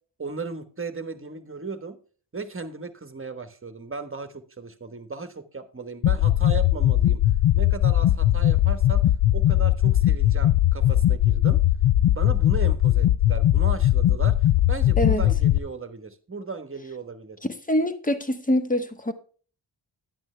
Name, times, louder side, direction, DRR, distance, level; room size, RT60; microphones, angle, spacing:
voice 1, 0.2-2.0 2.3-7.2 7.5-11.6 12.1-17.4, right 4 dB, 30° right, 1.2 m, -36 dB
sound 1, 6.0-15.6, left 13 dB, 90° left, 0.5 m, -20 dB
voice 2, 15.0-15.3 17.7-19.1, equal, 20° left, 1.2 m, -24 dB
10.5 x 8.9 x 3.2 m
wide cardioid pair, 80°, 44 cm